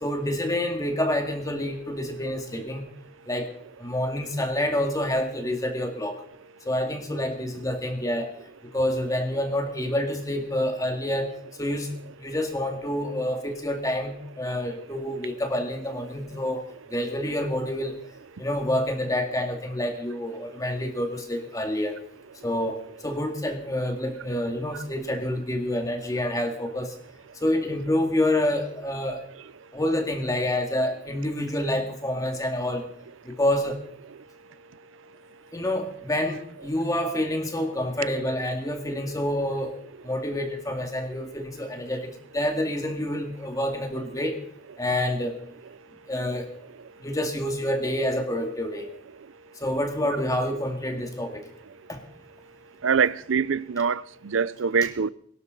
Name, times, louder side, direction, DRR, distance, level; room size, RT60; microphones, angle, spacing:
voice 1, 0.0-2.8 3.3-3.5 3.8-6.2 6.7-8.3 8.7-18.0 18.4-22.0 22.4-26.9 27.4-29.2 29.7-32.8 33.2-33.8 35.5-39.7 40.0-42.1 42.3-44.4 44.8-45.4 46.1-46.5 47.0-48.9 49.6-51.5 51.9-52.0, left 1 dB, 20° left, 2.2 m, -28 dB
voice 2, 52.8-54.0 54.3-55.1, right 6 dB, 80° right, 0.5 m, -23 dB
22.0 x 12.0 x 4.0 m
head